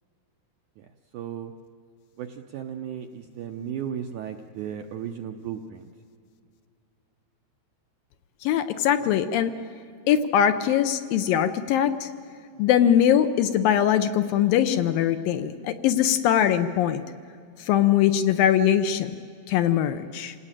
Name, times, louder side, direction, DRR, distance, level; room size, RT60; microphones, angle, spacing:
voice 1, 0.8-1.5 2.2-5.9, right 9 dB, 75° right, 5 dB, 1.8 m, -35 dB
voice 2, 8.4-9.5 10.1-12.1 12.6-17.0 17.6-19.1 19.5-20.3, left 10 dB, 75° left, 10 dB, 2.3 m, -21 dB
27.5 x 18.5 x 9.0 m, 2.4 s
omnidirectional pair, 4.5 m